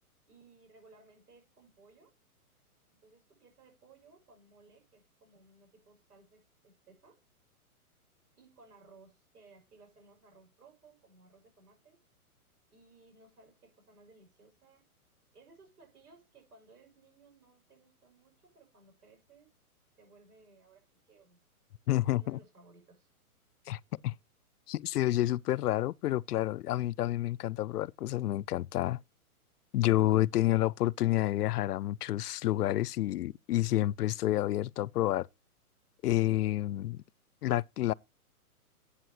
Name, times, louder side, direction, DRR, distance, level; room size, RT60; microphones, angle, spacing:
voice 1, 0.3-2.1 2.9-7.2 8.4-12.0 12.7-14.9 15.3-19.5 20.0-21.4 22.1-23.1, right 3 dB, 80° right, 6.7 m, -60 dB
voice 2, 21.9-22.4 23.7-24.1 24.7-29.0 29.7-35.3 36.0-37.0 37.4-37.9, left 14 dB, 85° left, 0.5 m, -29 dB
12.5 x 8.6 x 3.0 m
hypercardioid pair, 165°, 45 cm